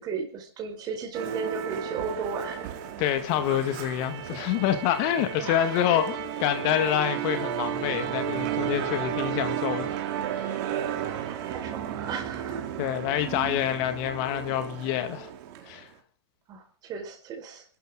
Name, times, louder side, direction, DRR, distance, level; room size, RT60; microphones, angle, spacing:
voice 1, 0.0-2.7 5.4-5.8 11.0-12.6 16.5-17.6, right 6 dB, 30° right, 4.9 m, -35 dB
Musical instrument, 1.1-15.8, right 9 dB, 45° right, 2.9 m, -33 dB
voice 2, 3.0-10.0 10.3-10.6 12.8-15.3 15.7-15.9, left 11 dB, 40° left, 2.0 m, -27 dB
26.5 x 12.5 x 3.8 m
hypercardioid pair, 125°, 14 cm